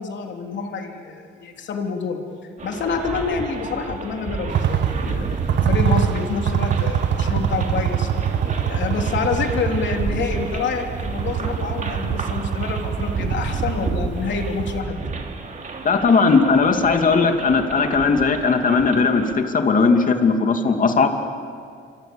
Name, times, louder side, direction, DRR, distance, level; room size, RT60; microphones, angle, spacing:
voice 1, 0.0-2.2 2.6-8.1 8.7-15.0, left 5 dB, 65° left, 2 dB, 3.5 m, -27 dB
sound 1, 2.6-19.3, right 4 dB, 40° right, 3.1 m, -30 dB
sound 2, 4.5-14.8, right 9 dB, 65° right, 1.5 m, -24 dB
voice 2, 15.8-21.2, left 4 dB, 40° left, 5 dB, 2.7 m, -18 dB
28.5 x 25.0 x 7.1 m, 2.2 s
cardioid pair, 90°, 20 cm